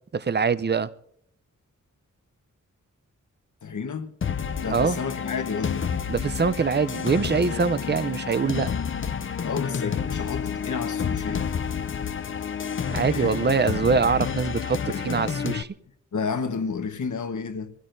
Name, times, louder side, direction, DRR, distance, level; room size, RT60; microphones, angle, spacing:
voice 1, 0.1-0.9 4.7-5.0 6.1-8.7 12.9-14.8 15.0-15.7, right 5 dB, 35° right, 0.5 m, -23 dB
voice 2, 3.6-4.1 4.6-5.9 9.4-11.5 13.1-13.4 14.9-15.3 16.1-17.7, left 5 dB, 75° left, 1.1 m, -31 dB
sound 1, 4.2-15.6, left 7 dB, 40° left, 0.5 m, -30 dB
25.0 x 16.0 x 2.6 m
wide cardioid pair, 140°, 31 cm